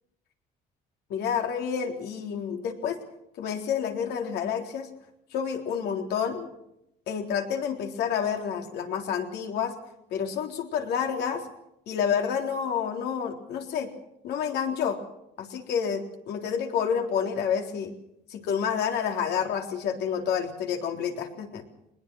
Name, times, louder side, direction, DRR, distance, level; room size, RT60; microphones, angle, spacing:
voice 1, 1.1-3.0 3.4-4.9 5.3-6.5 7.1-9.7 10.1-11.5 11.9-13.9 14.2-15.0 15.4-17.9 18.3-21.6, left 7 dB, 75° left, 3 dB, 3.7 m, -29 dB
21.5 x 20.5 x 6.3 m, 0.80 s
cardioid pair, 110°, 17 cm